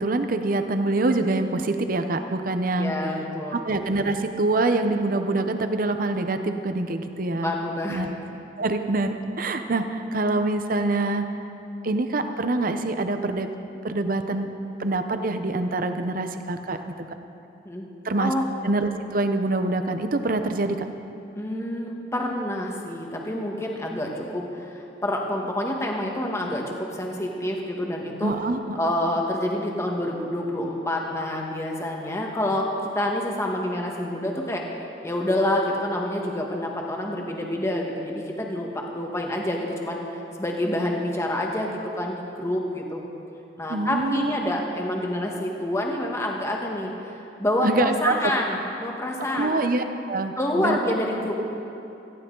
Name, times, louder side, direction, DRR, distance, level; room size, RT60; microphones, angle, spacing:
voice 1, 0.0-2.9 3.5-7.5 7.9-8.1 8.5-11.3 11.8-13.5 13.8-14.5 14.8-16.9 18.0-18.3 18.6-20.8 28.2-28.8 43.7-44.3 47.6-48.1 49.3-50.3 50.6-50.8, right 2 dB, 55° right, 8 dB, 0.8 m, -25 dB
voice 2, 2.8-3.6 7.4-8.0 17.6-17.8 18.2-18.4 21.4-28.3 28.7-34.6 35.0-43.0 43.6-49.6 50.4-51.4, left 1 dB, 15° left, 0 dB, 1.4 m, -27 dB
18.0 x 15.0 x 3.9 m, 2.9 s
head